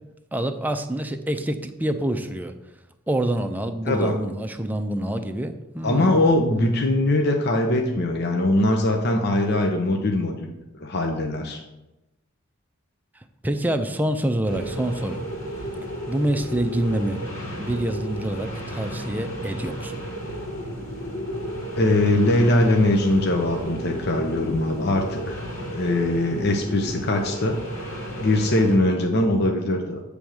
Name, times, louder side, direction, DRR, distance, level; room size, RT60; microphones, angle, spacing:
voice 1, 0.3-2.5 3.1-6.2 13.4-15.3 16.1-17.2 17.6-20.0, right 1 dB, 10° right, 7 dB, 0.5 m, -26 dB
voice 2, 3.8-4.2 5.8-10.5 10.8-11.6 21.8-25.4 25.7-27.6 28.2-30.0, left 1 dB, 55° left, 2 dB, 0.8 m, -21 dB
sound 1, 14.5-28.8, equal, 70° left, 2.3 m, -33 dB
8.7 x 3.5 x 6.4 m, 0.97 s
head